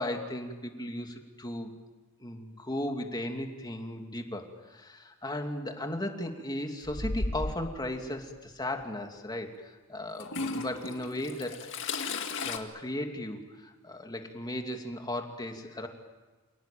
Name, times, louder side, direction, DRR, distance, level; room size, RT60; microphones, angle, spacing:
voice 1, 0.0-1.7 2.2-11.6 12.4-15.9, left 1 dB, 20° left, 4 dB, 2.6 m, -36 dB
Toilet flush / Trickle dribble, 6.8-7.8 8.8-8.9 10.2-12.6, left 3 dB, 60° left, 2.0 m, -35 dB
28.5 x 18.5 x 9.1 m, 1.3 s
head